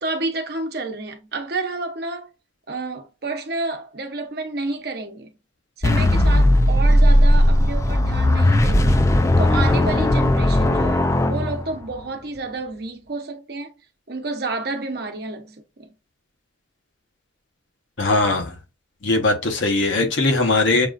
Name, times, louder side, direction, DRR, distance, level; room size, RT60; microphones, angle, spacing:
voice 1, 0.0-2.3 2.7-5.3 5.8-13.7 14.1-15.9, right 3 dB, 55° right, 0.9 m, -30 dB
sound 1, 5.8-12.0, left 1 dB, 15° left, 0.3 m, -17 dB
voice 2, 18.0-18.6 19.0-20.9, left 2 dB, 85° left, 1.0 m, -20 dB
6.8 x 2.4 x 2.5 m
head